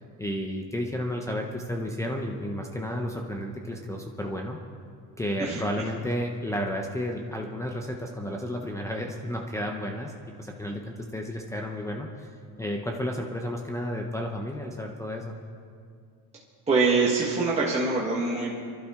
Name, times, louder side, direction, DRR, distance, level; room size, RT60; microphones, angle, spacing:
voice 1, 0.2-4.6 5.2-10.1 10.4-12.3 12.6-15.4, equal, 5° left, 1 dB, 0.7 m, -32 dB
voice 2, 16.7-18.6, right 4 dB, 15° right, -4 dB, 1.3 m, -24 dB
28.5 x 12.0 x 3.6 m, 2.3 s
cardioid pair, 170°, 43 cm